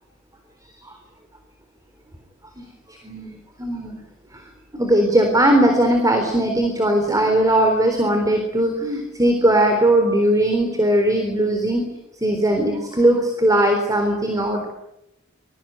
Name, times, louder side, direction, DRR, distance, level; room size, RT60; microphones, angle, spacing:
voice 1, 3.6-4.0 4.7-11.9 12.2-14.7, right 1 dB, 15° right, 4 dB, 3.9 m, -19 dB
27.0 x 21.5 x 9.1 m, 0.86 s
head